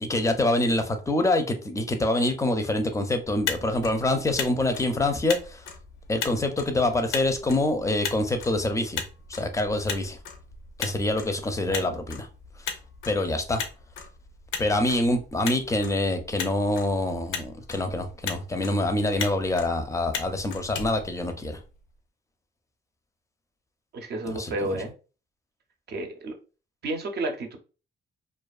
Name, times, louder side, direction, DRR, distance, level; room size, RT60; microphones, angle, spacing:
voice 1, 0.0-5.6 6.1-9.0 9.3-10.2 10.8-12.3 12.6-12.7 13.1-13.6 14.6-21.6 24.3-24.8, left 2 dB, 15° left, 0.4 m, -26 dB
Motor vehicle (road), 3.2-21.8, left 6 dB, 85° left, 0.5 m, -38 dB
voice 2, 23.9-24.9 25.9-26.3 26.8-27.6, right 2 dB, 55° right, 0.6 m, -31 dB
2.3 x 2.3 x 2.3 m
cardioid pair, 90°, 20 cm